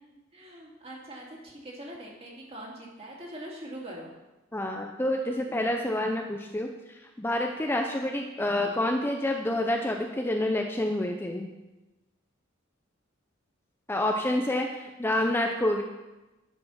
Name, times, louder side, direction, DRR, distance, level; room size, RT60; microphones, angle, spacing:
voice 1, 0.3-4.1, right 1 dB, 30° right, -3 dB, 2.5 m, -42 dB
voice 2, 4.5-11.5 13.9-15.8, left 1 dB, 10° left, 2 dB, 0.6 m, -28 dB
11.0 x 6.8 x 5.8 m, 1.1 s
head